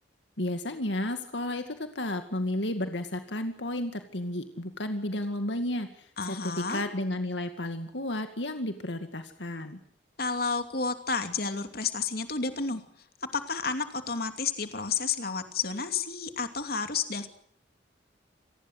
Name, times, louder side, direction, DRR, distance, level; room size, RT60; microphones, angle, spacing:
voice 1, 0.4-9.8, left 1 dB, 75° left, 7 dB, 2.2 m, -32 dB
voice 2, 6.2-6.8 10.2-12.8 13.2-17.3, left 5 dB, 55° left, 8 dB, 2.7 m, -31 dB
28.0 x 19.5 x 8.1 m, 0.63 s
head